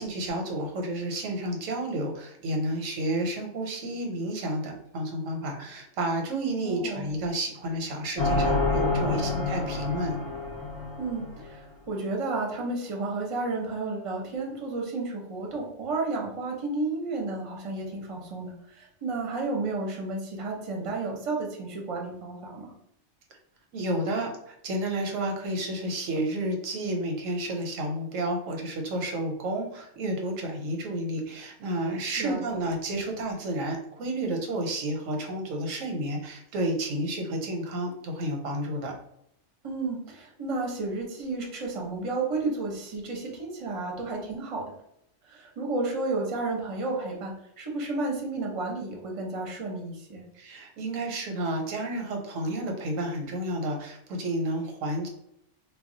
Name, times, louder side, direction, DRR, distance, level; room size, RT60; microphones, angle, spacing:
voice 1, 0.0-10.2 23.7-38.9 50.3-55.1, right 1 dB, 85° right, 2 dB, 1.0 m, -31 dB
voice 2, 6.6-7.1 9.0-9.4 10.9-22.7 32.2-32.4 39.6-44.7 45.2-50.2, right 3 dB, 35° right, -1 dB, 0.6 m, -32 dB
sound 1, 8.2-11.6, left 3 dB, 40° left, 0.7 m, -28 dB
2.3 x 2.1 x 3.7 m, 0.76 s
omnidirectional pair, 1.3 m